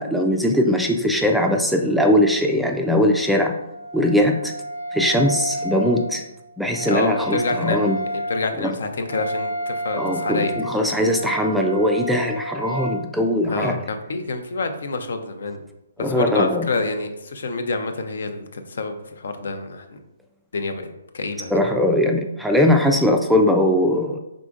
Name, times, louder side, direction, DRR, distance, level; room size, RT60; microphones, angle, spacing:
voice 1, 0.0-3.5 3.9-4.5 4.9-6.2 6.6-8.0 8.6-8.7 10.0-13.8 16.0-16.7 21.5-24.2, left 1 dB, ahead, 2 dB, 0.3 m, -20 dB
Wind instrument woodwind instrument, 3.0-13.0, right 1 dB, 90° right, 0.4 m, -31 dB
voice 2, 6.9-7.8 8.3-10.5 13.5-15.6 16.0-20.0 20.5-20.9 21.1-21.6, left 3 dB, 70° left, 7 dB, 0.6 m, -27 dB
4.9 x 3.7 x 2.4 m, 0.91 s
hypercardioid pair, 140°, 0 cm